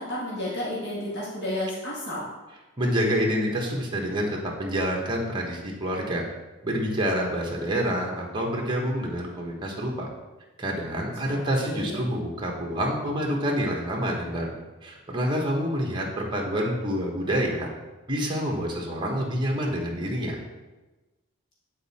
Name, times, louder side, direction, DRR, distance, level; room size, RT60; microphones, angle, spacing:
voice 1, 0.0-2.3 11.3-11.4 11.6-12.0, left 1 dB, 50° left, -6 dB, 1.6 m, -31 dB
voice 2, 2.8-6.2 6.6-10.1 10.6-17.7 18.1-20.3, equal, 20° right, 0 dB, 1.2 m, -27 dB
9.1 x 4.2 x 4.2 m, 1.2 s
head